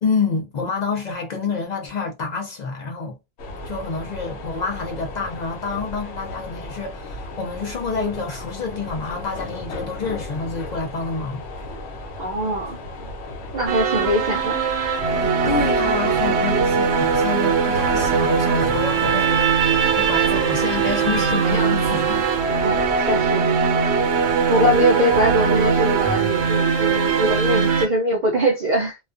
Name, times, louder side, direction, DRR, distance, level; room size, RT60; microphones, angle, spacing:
voice 1, 0.0-3.2 3.6-11.4 15.2-19.4 20.0-22.3 22.9-23.0, left 4 dB, 55° left, 0.5 m, -28 dB
sound 1, 3.4-23.3, left 2 dB, 80° left, 0.9 m, -35 dB
voice 2, 12.2-12.8 13.5-14.6 22.6-23.5 24.5-29.0, equal, 55° right, 0.6 m, -22 dB
sound 2, 13.7-27.9, right 6 dB, 80° right, 0.9 m, -20 dB
2.3 x 2.2 x 2.4 m
omnidirectional pair, 1.1 m